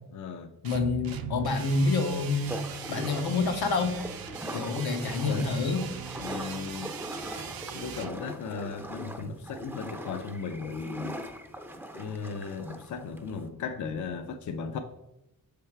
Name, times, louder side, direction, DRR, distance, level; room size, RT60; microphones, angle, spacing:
voice 1, 0.1-0.5 5.2-5.5 6.2-7.0 7.7-11.3 11.9-14.8, left 5 dB, 50° left, 7 dB, 0.5 m, -36 dB
voice 2, 0.6-2.6 2.9-4.0 4.5-5.9, left 3 dB, 80° left, 5 dB, 0.9 m, -27 dB
sound 1, 0.6-8.1, right 6 dB, 70° right, 0.6 m, -40 dB
sound 2, 2.5-13.5, right 1 dB, 5° right, 0.5 m, -41 dB
6.3 x 3.4 x 4.5 m, 0.92 s
cardioid pair, 100°, 37 cm